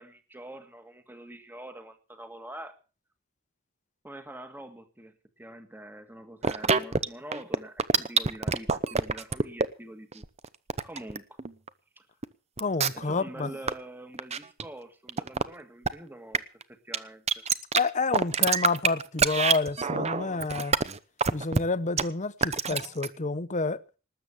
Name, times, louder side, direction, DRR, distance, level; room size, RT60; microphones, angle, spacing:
voice 1, 0.0-2.8 4.0-10.3 10.8-11.4 12.0-12.1 13.0-17.2, right 1 dB, 10° right, 1.7 m, -45 dB
sound 1, 6.4-7.1 7.3-9.7 10.1-11.7 12.2-12.3 12.6-13.1 13.4-13.7 14.1-14.7 15.1-15.4 15.9-16.0 16.3-16.6 16.9-17.0 17.3-17.8 18.1-21.6 22.0-22.1 22.4-23.1, right 5 dB, 30° right, 0.8 m, -25 dB
voice 2, 12.6-13.5 17.7-20.7 21.3-23.8, left 3 dB, 35° left, 0.9 m, -29 dB
19.5 x 8.0 x 7.2 m
head